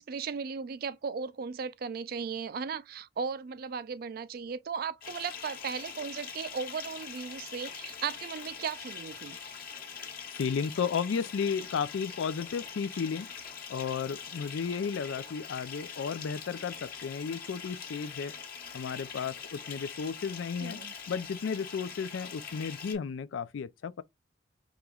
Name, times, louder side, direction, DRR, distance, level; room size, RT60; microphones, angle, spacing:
voice 1, 0.0-9.4 20.6-20.9, right 6 dB, 50° right, 0.3 m, -36 dB
Bathtub (filling or washing) / Fill (with liquid), 5.0-22.9, left 7 dB, 50° left, 1.1 m, -43 dB
voice 2, 10.3-13.3 13.7-18.3 18.7-24.0, left 6 dB, 85° left, 0.4 m, -33 dB
4.9 x 3.0 x 2.3 m
head